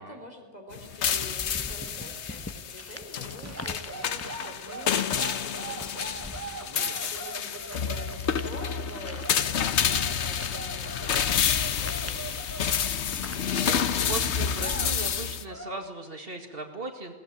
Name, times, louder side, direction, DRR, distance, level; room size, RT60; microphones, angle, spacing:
voice 1, 0.0-8.1 8.4-12.5, equal, 35° left, 3 dB, 3.8 m, -46 dB
sound 1, 0.7-15.4, left 8 dB, 70° left, 1.1 m, -29 dB
sound 2, 0.8-2.3 3.1-13.6 14.1-14.2 14.5-15.1 15.5-15.9, right 2 dB, 15° right, 0.8 m, -42 dB
sound 3, 1.4-15.3, left 1 dB, 10° left, 1.0 m, -44 dB
voice 2, 6.6-7.1 13.5-17.1, right 3 dB, 50° right, 5 dB, 2.3 m, -38 dB
21.0 x 18.5 x 8.8 m, 1.4 s
omnidirectional pair, 1.2 m